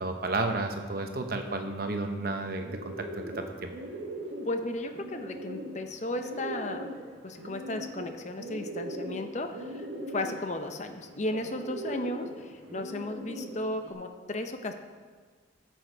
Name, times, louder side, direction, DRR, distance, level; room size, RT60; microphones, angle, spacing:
voice 1, 0.0-3.7, right 2 dB, 55° right, 5 dB, 0.9 m, -32 dB
Bird, 2.3-13.9, right 1 dB, 90° right, 1.5 m, -40 dB
voice 2, 4.4-6.9 7.2-14.7, left 1 dB, 40° left, 6 dB, 0.7 m, -35 dB
13.0 x 6.3 x 4.6 m, 1.5 s
head